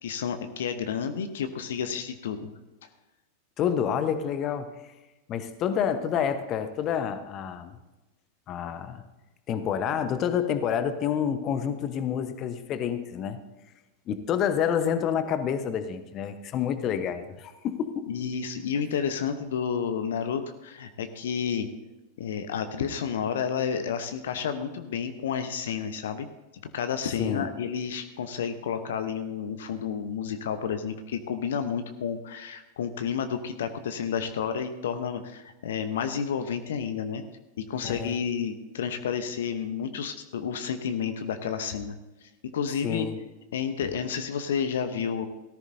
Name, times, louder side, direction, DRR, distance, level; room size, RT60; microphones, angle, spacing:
voice 1, 0.0-2.5 2.8-2.9 18.1-21.7 22.2-26.3 26.7-37.2 37.6-43.1 43.5-45.3, left 7 dB, 60° left, 8 dB, 0.9 m, -31 dB
voice 2, 3.6-4.9 5.3-7.8 8.5-9.0 9.5-13.4 14.1-18.1 27.2-27.5 37.8-38.2 42.8-43.2, left 8 dB, 35° left, 10 dB, 1.0 m, -28 dB
17.5 x 14.0 x 2.7 m, 1.1 s
figure-of-eight pair, 90°, 0 cm